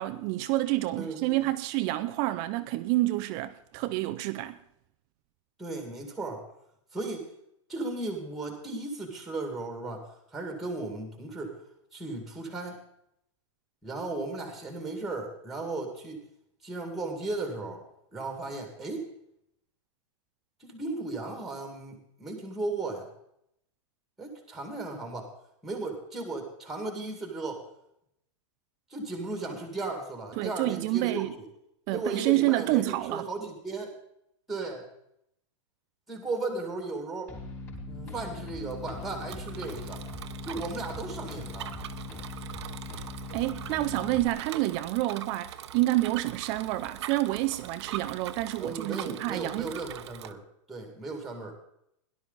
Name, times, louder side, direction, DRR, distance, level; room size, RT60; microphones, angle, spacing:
voice 1, 0.0-4.6 30.4-31.3 31.9-33.3 43.3-49.7, right 17 dB, 25° right, 0.4 m, -28 dB
voice 2, 1.0-1.5 5.6-6.5 6.9-7.3 7.7-11.6 11.9-12.8 13.8-16.2 16.6-17.8 18.1-19.1 20.6-23.1 24.2-25.3 25.6-27.7 28.9-31.5 31.9-33.9 34.5-34.9 36.1-37.3 37.9-40.0 40.4-41.7 48.6-50.4 50.7-51.6, right 3 dB, ahead, 2.1 m, -36 dB
sound 1, 37.3-44.3, left 2 dB, 15° left, 4.2 m, -40 dB
Bicycle, 38.6-50.3, right 11 dB, 55° right, 0.9 m, -43 dB
17.0 x 11.5 x 4.0 m
supercardioid pair, 170°, 17 cm